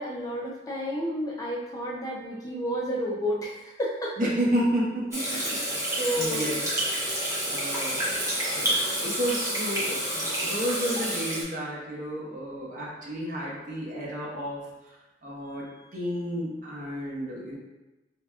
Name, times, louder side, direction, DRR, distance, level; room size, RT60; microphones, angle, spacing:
voice 1, 0.0-4.1 5.3-5.6 6.0-6.5, equal, 20° left, -3 dB, 0.4 m, -31 dB
voice 2, 4.2-5.4 5.7-6.6 7.0-14.6 15.2-17.6, equal, 50° right, -5 dB, 0.9 m, -31 dB
Water tap faucet / Sink (filling or washing), 5.1-11.4, equal, 15° right, 0.9 m, -29 dB
4.7 x 2.2 x 2.3 m, 1.1 s
head